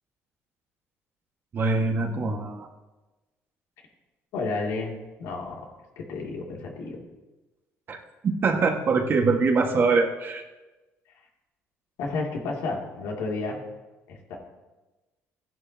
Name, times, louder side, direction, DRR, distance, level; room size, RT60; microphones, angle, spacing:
voice 1, 1.5-2.7 7.9-8.0 8.4-10.4, right 4 dB, 45° right, 3 dB, 1.6 m, -23 dB
voice 2, 4.3-4.9 5.2-5.7 6.0-7.0 12.0-13.6 14.1-14.4, left 3 dB, 80° left, -1 dB, 2.6 m, -31 dB
15.5 x 11.0 x 2.9 m, 1.1 s
cardioid pair, 95°, 5 cm